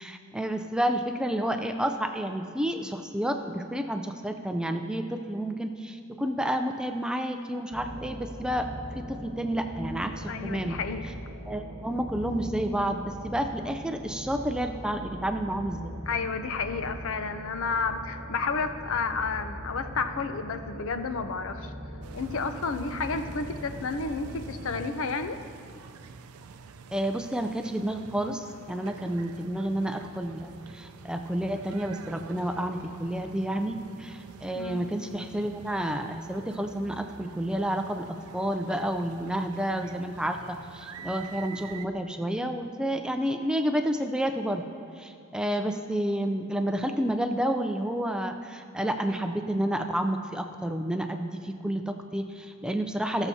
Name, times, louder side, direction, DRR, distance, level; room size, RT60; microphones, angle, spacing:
voice 1, 0.0-8.7 9.0-10.8 11.5-16.0 26.9-44.6 45.0-53.3, right 1 dB, 5° right, 5 dB, 0.4 m, -30 dB
sound 1, 7.7-24.9, equal, 30° right, 1.5 m, -41 dB
voice 2, 10.3-11.1 16.1-21.7 22.1-25.4 34.5-34.8, left 4 dB, 65° left, 9 dB, 0.6 m, -31 dB
sound 2, 22.0-41.9, right 5 dB, 85° right, 0.4 m, -47 dB
18.0 x 7.0 x 2.8 m, 2.5 s
head